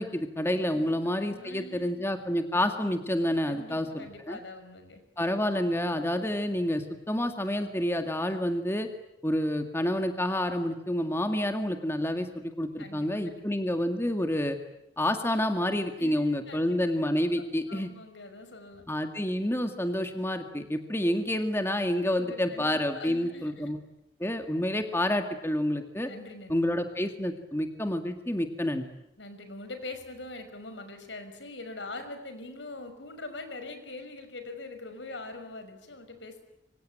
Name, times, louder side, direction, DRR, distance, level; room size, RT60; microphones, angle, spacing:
voice 1, 0.0-4.4 5.2-8.9 9.2-14.6 15.0-17.9 18.9-23.8 24.2-26.1 26.5-28.8, left 1 dB, 15° left, 6 dB, 2.0 m, -29 dB
voice 2, 1.2-2.1 3.5-5.0 12.8-13.4 16.0-16.8 17.7-18.8 22.2-23.7 26.0-26.9 29.2-36.4, left 2 dB, 75° left, 8 dB, 5.8 m, -43 dB
26.5 x 25.0 x 8.9 m, 0.85 s
head